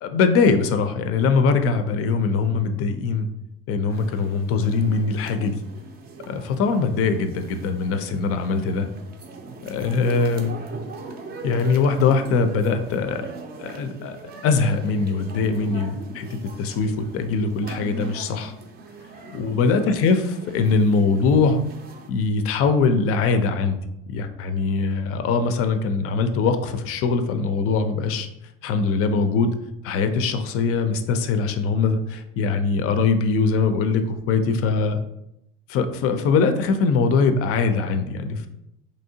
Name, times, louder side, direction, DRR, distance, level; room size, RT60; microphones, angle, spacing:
voice 1, 0.0-3.3 3.7-5.6 6.3-8.9 9.6-10.6 11.4-13.2 13.6-14.2 14.4-18.5 19.3-21.6 22.1-23.8 24.1-28.3 28.6-29.5 29.8-35.0 35.7-38.5, left 4 dB, 50° left, 8 dB, 0.4 m, -22 dB
sound 1, 3.9-22.1, right 3 dB, 35° right, 0.4 m, -40 dB
3.0 x 2.7 x 2.7 m, 0.84 s
supercardioid pair, 100°, 29 cm